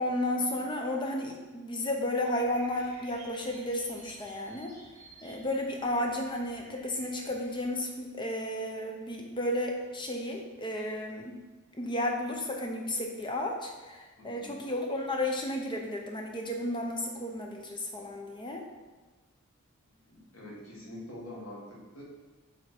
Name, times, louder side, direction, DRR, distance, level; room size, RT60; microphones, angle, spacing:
voice 1, 0.0-4.7 5.2-11.3 11.7-18.6, left 1 dB, 20° left, 2 dB, 0.8 m, -33 dB
sound 1, 2.3-7.6, right 2 dB, 35° right, 2.0 m, -53 dB
voice 2, 14.2-14.6 20.1-22.0, left 1 dB, 80° left, -4 dB, 2.0 m, -45 dB
7.6 x 3.7 x 4.5 m, 1.2 s
head